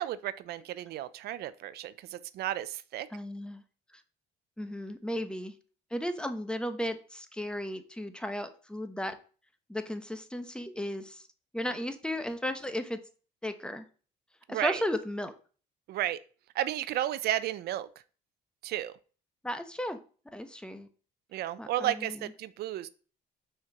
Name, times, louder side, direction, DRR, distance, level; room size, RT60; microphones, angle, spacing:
voice 1, 0.0-3.1 14.5-14.8 15.9-16.2 16.5-17.9 18.6-19.0 21.3-22.9, right 13 dB, 70° right, 0.5 m, -33 dB
voice 2, 3.1-3.6 4.6-5.5 5.9-9.2 9.7-11.3 11.5-13.0 13.4-13.9 14.5-15.3 19.4-20.0 20.3-20.9 21.6-22.3, left 1 dB, 5° left, 0.9 m, -35 dB
6.2 x 4.4 x 6.0 m
cardioid pair, 110°, 17 cm